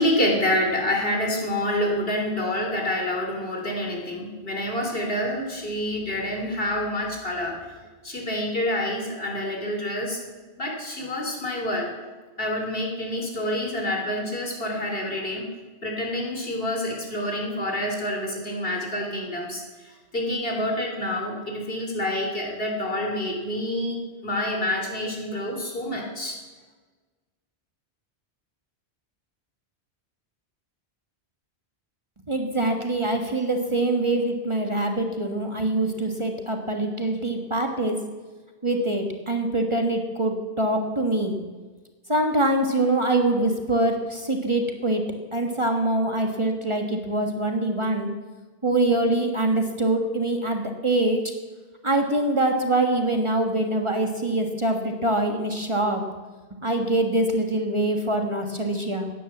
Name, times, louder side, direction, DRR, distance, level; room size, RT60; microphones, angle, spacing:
voice 1, 0.0-7.6 8.0-10.2 10.6-11.9 12.4-15.5 15.8-19.6 20.1-24.0 24.2-26.4, left 1 dB, 55° left, 1 dB, 3.5 m, -27 dB
voice 2, 32.3-38.0 38.6-41.4 42.1-45.0 45.3-48.1 48.6-51.3 51.8-56.0 56.6-59.1, right 2 dB, 25° right, 3 dB, 1.6 m, -24 dB
16.5 x 10.0 x 7.3 m, 1.3 s
omnidirectional pair, 1.1 m